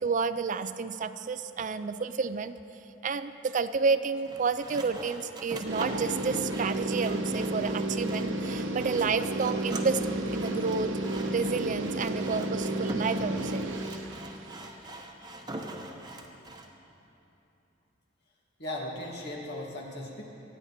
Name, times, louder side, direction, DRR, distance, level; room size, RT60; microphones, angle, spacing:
voice 1, 0.0-2.6 3.0-11.0 11.3-13.7, right 5 dB, 40° right, 12 dB, 0.4 m, -30 dB
Sawing, 4.2-16.7, right 2 dB, 20° right, 1.0 m, -43 dB
sound 1, 5.7-14.4, right 1 dB, 80° right, 1.1 m, -32 dB
voice 2, 18.6-20.2, left 1 dB, 60° left, -2 dB, 2.2 m, -37 dB
25.0 x 9.4 x 4.3 m, 2.9 s
head